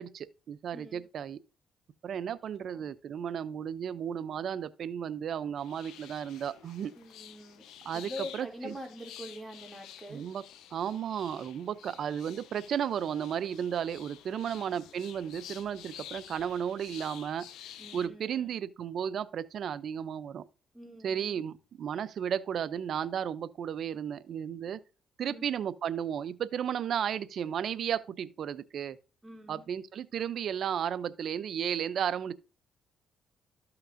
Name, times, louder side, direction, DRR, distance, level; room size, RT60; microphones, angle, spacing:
voice 1, 0.0-1.4 2.0-6.9 7.9-8.7 10.1-10.4 10.7-17.5 17.9-20.4 21.0-24.8 25.2-29.0 29.5-32.3, right 8 dB, 65° right, 0.4 m, -34 dB
voice 2, 0.7-1.0 2.6-2.9 6.9-7.6 7.9-10.2 14.3-14.8 17.8-18.6 20.7-21.4 25.2-25.5 29.2-29.6, left 1 dB, 5° right, 2.4 m, -45 dB
sound 1, 5.6-18.1, left 10 dB, 85° left, 0.8 m, -50 dB
13.5 x 5.8 x 2.5 m
cardioid pair, 90°, 0 cm